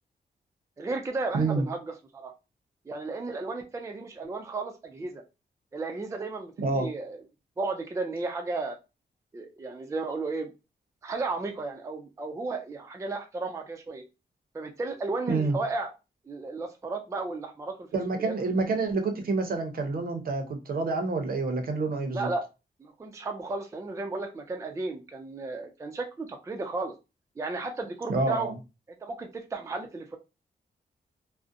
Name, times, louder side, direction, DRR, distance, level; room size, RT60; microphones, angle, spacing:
voice 1, 0.8-1.8 2.1-2.3 2.9-5.2 5.7-7.2 7.6-8.8 9.3-10.5 11.0-14.0 14.5-15.9 16.3-17.9 18.2-18.3 22.1-22.4 22.8-26.9 27.4-28.5 29.0-30.2, right 3 dB, 15° right, 4 dB, 0.4 m, -34 dB
voice 2, 1.3-1.6 6.6-6.9 15.3-15.6 17.9-22.3 28.1-28.6, right 3 dB, 60° right, 5 dB, 0.6 m, -28 dB
2.4 x 2.0 x 2.6 m, 0.27 s
wide cardioid pair, 140°, 17 cm